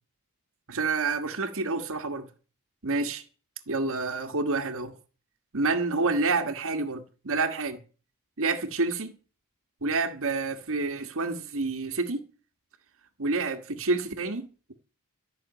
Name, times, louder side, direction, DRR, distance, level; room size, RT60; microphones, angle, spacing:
voice 1, 0.7-2.3 2.8-3.2 3.7-4.9 5.5-7.8 8.4-9.1 9.8-12.2 13.2-14.7, right 3 dB, 65° right, 1.6 m, -28 dB
14.0 x 6.3 x 9.1 m
head